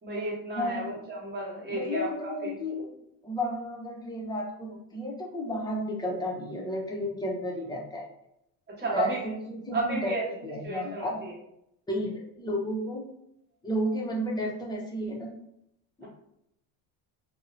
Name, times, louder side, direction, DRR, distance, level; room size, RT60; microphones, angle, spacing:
voice 1, 0.0-2.5 8.7-9.2 9.7-10.2 10.6-11.3, right 2 dB, 25° right, -4 dB, 1.1 m, -33 dB
voice 2, 0.5-1.0 1.7-2.9 3.2-8.1 8.8-10.1 10.4-11.2 11.9-13.0 13.6-15.3 16.0-16.1, equal, 10° left, -1 dB, 0.6 m, -32 dB
2.6 x 2.1 x 2.5 m, 0.79 s
supercardioid pair, 100°, 36 cm